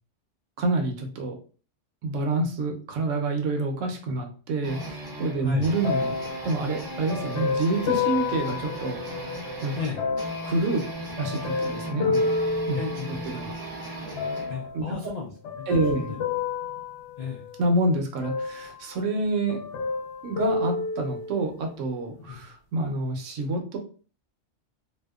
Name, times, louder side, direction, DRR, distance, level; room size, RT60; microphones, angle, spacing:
voice 1, 0.6-1.3 2.0-9.0 9.6-9.7 10.4-10.8 11.2-12.3 12.7-12.8 13.3-13.5 14.7-14.8 15.7-16.1 17.6-19.6 20.2-23.8, right 2 dB, 80° right, 4 dB, 0.9 m, -27 dB
sound 1, 4.6-14.7, right 1 dB, 30° right, 0.5 m, -37 dB
voice 2, 5.4-5.7 9.8-10.0 12.7-13.3 14.5-15.3 15.7-16.2 17.2-17.5 22.3-22.4, left 6 dB, 90° left, -1 dB, 0.3 m, -34 dB
sound 2, 5.8-9.4 10.0-13.5 14.2-14.8 15.4-17.8 18.2-19.2 19.5-21.5 22.2-22.3, left 4 dB, 70° left, 0.8 m, -30 dB
2.7 x 2.0 x 2.3 m, 0.39 s
omnidirectional pair, 1.3 m